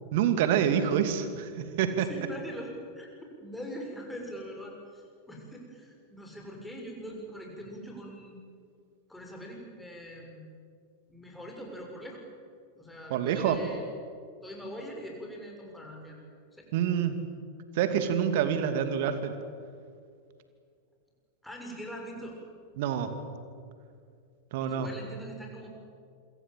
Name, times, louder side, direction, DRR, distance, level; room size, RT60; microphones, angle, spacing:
voice 1, 0.1-2.1 13.1-13.6 16.7-17.2 17.7-19.4 22.8-23.1 24.5-24.9, right 9 dB, 50° right, 9 dB, 2.6 m, -27 dB
voice 2, 2.0-3.1 3.4-8.5 9.1-10.4 11.1-12.2 12.8-13.9 14.4-16.2 16.5-16.7 21.4-22.4 24.6-25.7, equal, 5° left, 0 dB, 6.8 m, -42 dB
27.0 x 24.5 x 7.7 m, 2.2 s
figure-of-eight pair, 90°, 0 cm